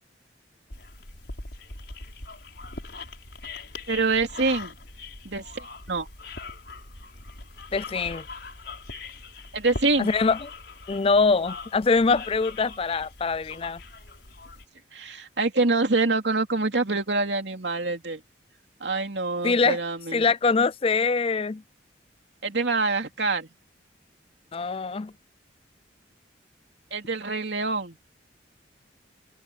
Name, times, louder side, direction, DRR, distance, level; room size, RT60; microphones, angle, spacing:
sound 1, 0.7-14.7, left 3 dB, 60° left, 5.5 m, -41 dB
voice 1, 3.9-4.7 5.2-6.1 9.5-10.1 14.9-18.2 18.8-20.2 22.4-23.5 26.9-28.0, right 3 dB, 70° right, 2.9 m, -26 dB
voice 2, 7.7-8.2 10.0-10.5 10.9-13.8 19.4-19.8 20.1-21.6 24.5-25.1, left 4 dB, 30° left, 0.4 m, -23 dB
open air
head